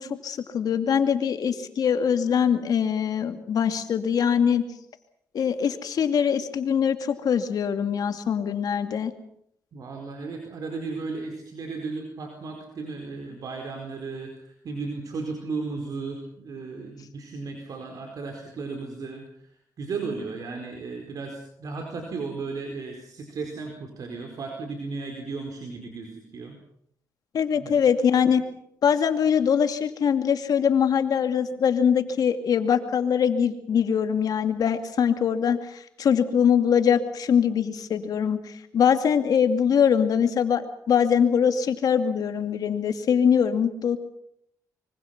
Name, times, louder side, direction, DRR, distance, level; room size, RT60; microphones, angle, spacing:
voice 1, 0.0-4.6 5.3-9.1 27.3-28.4 28.8-44.0, left 7 dB, 65° left, 8 dB, 2.4 m, -23 dB
voice 2, 9.7-19.2 19.8-26.6 27.6-27.7, right 4 dB, 60° right, 3 dB, 4.6 m, -35 dB
25.0 x 24.5 x 6.0 m, 0.72 s
cardioid pair, 85°, 7 cm